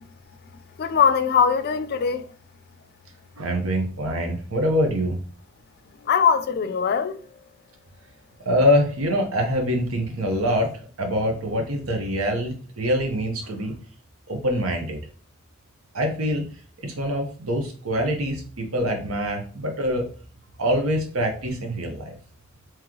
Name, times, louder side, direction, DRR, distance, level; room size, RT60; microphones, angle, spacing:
voice 1, 0.8-2.3 6.0-7.2, left 6 dB, 50° left, 0.4 m, -21 dB
voice 2, 3.4-5.2 8.4-10.7 11.0-13.7 14.3-15.0 15.9-16.5 16.8-20.1 20.6-22.2, equal, 85° right, 1.0 m, -24 dB
3.1 x 3.1 x 3.7 m
head